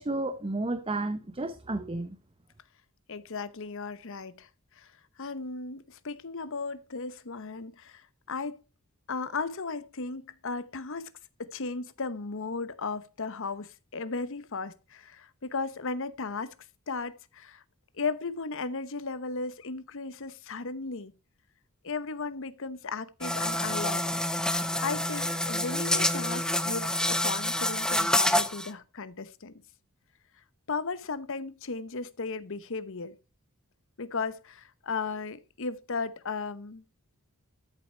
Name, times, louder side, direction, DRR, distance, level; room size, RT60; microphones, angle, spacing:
voice 1, 0.0-2.2, right 2 dB, 25° right, 0.7 m, -32 dB
voice 2, 3.1-4.5 4.8-4.9 5.2-8.6 9.1-11.1 11.4-16.5 16.9-17.6 18.0-21.1 21.8-24.1 24.8-29.5 30.7-33.2 34.0-36.8, left 4 dB, 60° left, 0.9 m, -35 dB
sound 1, 23.2-28.7, left 1 dB, 5° left, 0.7 m, -27 dB
13.5 x 7.7 x 4.3 m
head